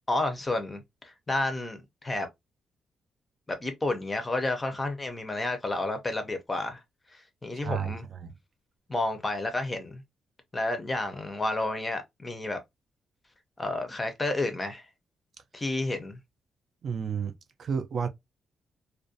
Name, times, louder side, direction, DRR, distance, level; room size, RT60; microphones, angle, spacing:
voice 1, 0.1-2.3 3.5-6.8 7.4-8.0 8.9-10.0 10.5-12.6 13.6-14.9 15.5-16.2, left 2 dB, 15° left, 0.5 m, -30 dB
voice 2, 7.6-8.3 16.8-17.3 17.6-18.1, right 6 dB, 50° right, 0.3 m, -31 dB
2.4 x 2.1 x 2.5 m
wide cardioid pair, 160°, 0 cm